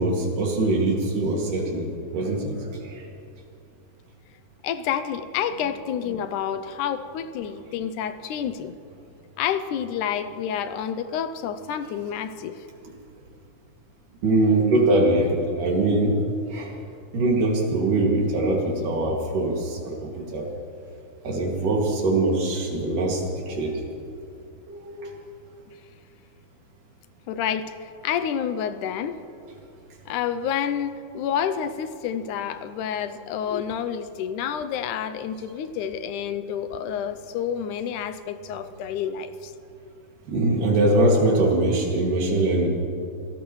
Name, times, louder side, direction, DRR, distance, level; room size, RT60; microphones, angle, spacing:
voice 1, 0.0-3.1 14.2-16.1 16.5-16.7 17.1-20.5 21.2-23.8 24.7-25.1 40.3-42.7, right 2 dB, 80° right, -1 dB, 4.0 m, -22 dB
voice 2, 4.6-8.8 9.4-12.6 27.3-29.2 30.1-39.5, left 8 dB, 80° left, 11 dB, 2.1 m, -29 dB
26.5 x 17.5 x 3.2 m, 2.6 s
omnidirectional pair, 3.7 m